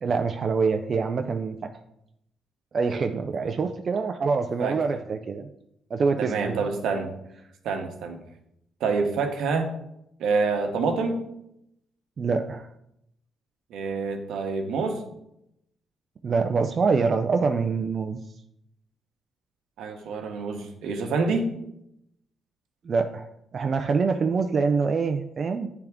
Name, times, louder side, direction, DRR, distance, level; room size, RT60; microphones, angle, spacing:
voice 1, 0.0-1.7 2.7-5.5 5.9-6.6 12.2-12.7 16.2-18.2 22.8-23.3 23.5-25.7, right 4 dB, 45° right, 5 dB, 0.4 m, -25 dB
voice 2, 6.2-7.1 7.6-8.2 8.8-9.7 10.2-11.2 13.7-15.0 19.8-21.5, right 4 dB, 80° right, 4 dB, 1.0 m, -27 dB
9.2 x 3.5 x 3.5 m, 0.79 s
cardioid pair, 90°, 0 cm